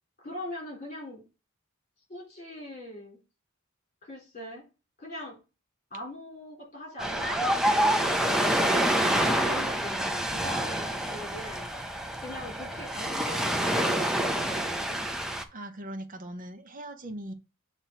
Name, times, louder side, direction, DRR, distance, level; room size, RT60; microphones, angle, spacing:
voice 1, 0.2-1.2 2.1-3.2 4.0-4.6 5.0-5.4 5.9-8.5 9.0-11.7 12.2-14.9, left 1 dB, 40° left, 4.0 m, -41 dB
Ocean, 7.0-15.4, right 1 dB, 5° right, 0.6 m, -27 dB
voice 2, 15.5-17.3, right 1 dB, 40° right, 0.9 m, -40 dB
6.8 x 3.0 x 5.8 m
head